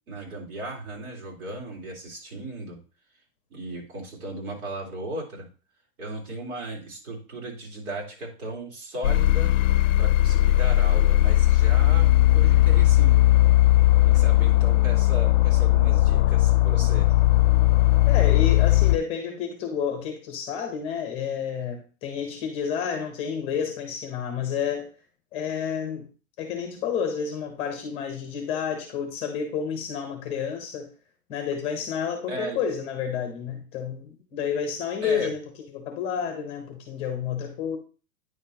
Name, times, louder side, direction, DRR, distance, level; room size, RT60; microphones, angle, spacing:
voice 1, 0.1-2.8 3.5-5.5 6.0-9.5 10.0-13.2 14.0-17.1 32.3-32.6 35.0-35.3, right 1 dB, 80° right, -1 dB, 3.7 m, -36 dB
sound 1, 9.0-19.0, left 15 dB, 60° left, 0.5 m, -18 dB
voice 2, 18.1-24.9 25.3-26.1 26.4-30.9 31.3-35.4 35.7-37.8, left 7 dB, 15° left, 5 dB, 0.7 m, -30 dB
9.4 x 5.8 x 2.8 m, 0.36 s
supercardioid pair, 170°, 42 cm